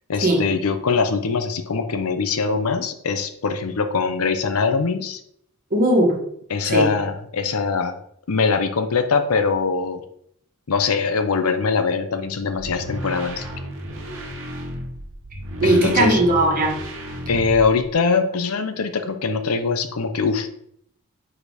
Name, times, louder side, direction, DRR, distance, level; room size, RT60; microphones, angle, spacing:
voice 1, 0.1-5.2 6.5-8.0 8.3-10.0 10.7-13.5 15.6-16.2 17.3-20.5, left 4 dB, 70° left, 9 dB, 0.6 m, -22 dB
voice 2, 5.7-6.2 6.7-6.9 15.6-16.8, right 1 dB, 40° right, -1 dB, 1.6 m, -18 dB
sound 1, 12.6-17.9, equal, 60° right, 1.3 m, -33 dB
4.9 x 4.2 x 5.0 m, 0.71 s
head